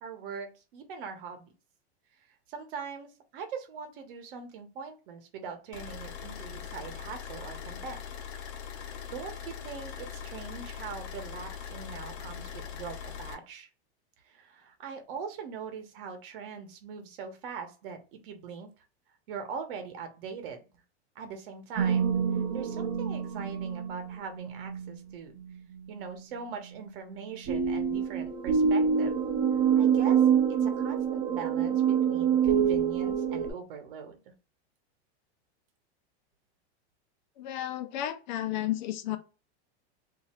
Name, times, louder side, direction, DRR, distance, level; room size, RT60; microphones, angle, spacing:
voice 1, 0.0-1.5 2.5-8.0 8.8-13.7 14.2-18.7 19.3-20.6 21.1-22.2 22.5-25.4 25.9-29.1 29.8-30.2 30.6-34.2, right 6 dB, 55° right, 1.0 m, -41 dB
sound 1, 5.7-13.3, left 8 dB, 75° left, 1.0 m, -41 dB
sound 2, 21.8-24.9 27.5-33.5, right 7 dB, 35° right, 0.6 m, -26 dB
voice 2, 37.4-39.2, left 13 dB, 45° left, 0.4 m, -32 dB
2.8 x 2.8 x 4.2 m
supercardioid pair, 165°, 34 cm